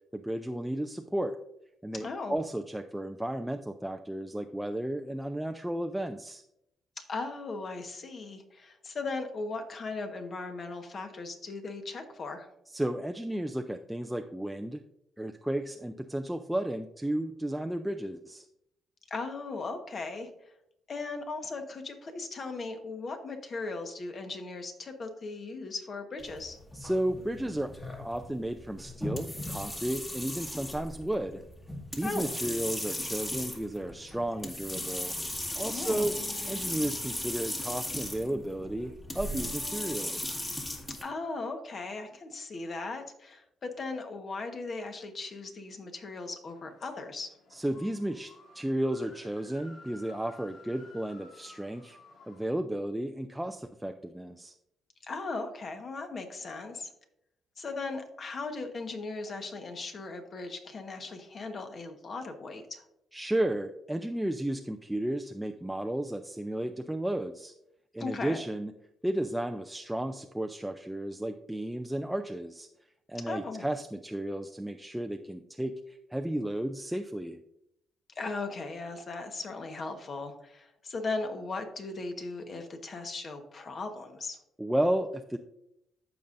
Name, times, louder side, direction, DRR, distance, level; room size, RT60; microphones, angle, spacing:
voice 1, 0.1-1.4 1.8-6.4 12.7-14.8 15.2-18.5 26.7-27.7 28.0-31.4 32.0-35.1 35.6-36.1 36.5-40.4 47.5-48.3 48.5-52.0 52.3-54.5 63.1-67.5 67.9-68.7 69.0-72.7 73.1-77.4 84.6-85.4, right 1 dB, 5° right, 5 dB, 0.4 m, -33 dB
voice 2, 1.9-2.4 7.0-12.5 19.1-20.3 20.9-26.6 32.0-32.3 35.7-36.1 40.9-47.3 55.1-56.9 57.6-62.8 68.0-68.4 73.3-73.6 78.1-84.4, left 3 dB, 45° left, 6 dB, 1.3 m, -38 dB
sound 1, 26.2-41.0, left 1 dB, 20° left, 1.8 m, -37 dB
sound 2, 46.5-52.5, left 3 dB, 70° left, 1.6 m, -54 dB
14.0 x 5.4 x 2.6 m, 0.80 s
cardioid pair, 90°, 0 cm